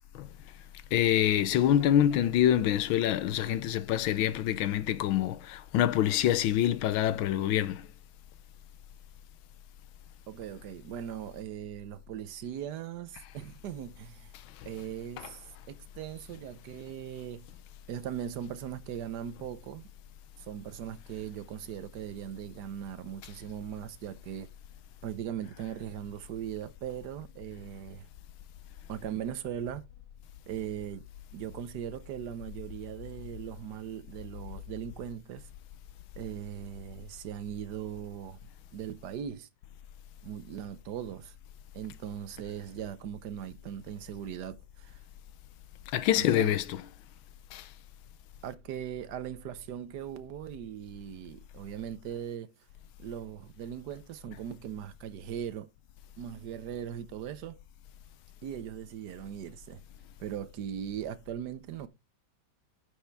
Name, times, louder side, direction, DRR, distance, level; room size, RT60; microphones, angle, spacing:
voice 1, 0.9-7.9 13.2-13.3 14.3-14.7 15.2-15.4 23.2-23.3 45.9-46.9 47.5-47.7, left 11 dB, 85° left, 1.5 m, -26 dB
voice 2, 10.3-14.3 14.6-15.4 15.7-17.5 17.9-19.9 20.4-24.5 25.0-28.1 28.9-29.8 30.5-31.0 31.3-35.5 36.2-38.4 38.7-39.5 40.2-41.3 41.7-45.0 46.2-46.6 48.4-52.5 53.0-55.7 56.2-57.6 58.4-59.8 60.2-61.9, right 10 dB, 65° right, 1.3 m, -39 dB
10.0 x 6.4 x 3.4 m
omnidirectional pair, 2.1 m